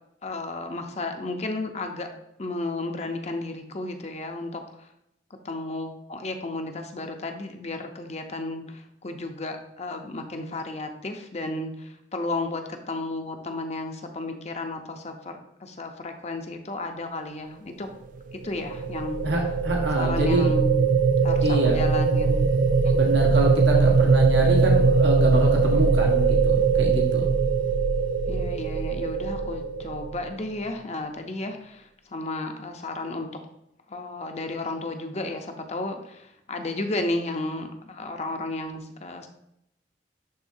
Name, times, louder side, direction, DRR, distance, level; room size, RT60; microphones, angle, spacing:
voice 1, 0.2-2.1 2.4-4.9 5.4-17.9 18.4-19.2 20.0-20.9 21.2-22.5 22.8-23.0 28.3-33.3 33.9-39.3, left 2 dB, 40° left, 5 dB, 0.8 m, -33 dB
sound 1, 18.3-30.5, right 4 dB, 45° right, 0.3 m, -21 dB
voice 2, 19.2-20.6 21.4-21.8 22.9-27.3, right 1 dB, 80° right, -1 dB, 1.3 m, -26 dB
11.5 x 3.8 x 2.7 m, 0.81 s
head